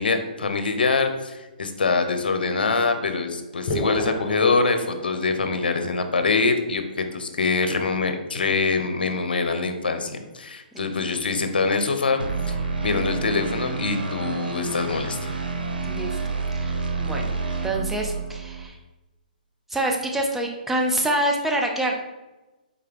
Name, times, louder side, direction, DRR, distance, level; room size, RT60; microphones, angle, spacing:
voice 1, 0.0-15.3, left 4 dB, 80° left, 7 dB, 0.6 m, -24 dB
sound 1, 3.7-5.6, left 1 dB, 40° left, 1.3 m, -30 dB
sound 2, 12.2-18.7, right 4 dB, 90° right, 0.7 m, -29 dB
voice 2, 16.5-17.3 17.6-18.8 19.7-21.9, right 1 dB, 5° right, 0 dB, 0.5 m, -26 dB
3.9 x 3.3 x 3.5 m, 1.1 s
hypercardioid pair, 140°, 5 cm